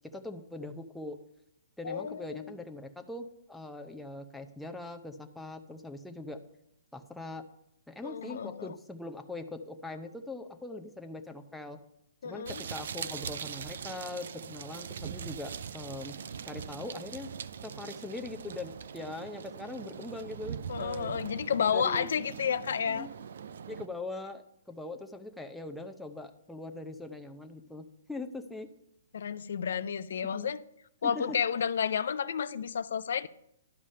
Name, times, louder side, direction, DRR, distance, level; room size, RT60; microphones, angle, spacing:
voice 1, 0.0-1.2 1.8-6.4 6.9-7.4 7.9-11.8 12.2-16.2 16.5-17.3 17.6-21.2 21.7-22.1 22.8-23.1 23.7-28.7 30.3-30.5 31.0-31.4, left 2 dB, 5° left, 0.6 m, -41 dB
voice 2, 1.8-2.5 8.0-8.7 12.2-12.6 20.7-23.1 29.1-30.6 31.0-33.3, left 7 dB, 70° left, 0.4 m, -31 dB
sound 1, 12.5-23.9, right 7 dB, 65° right, 0.4 m, -41 dB
11.5 x 4.9 x 5.5 m
hypercardioid pair, 155°, 0 cm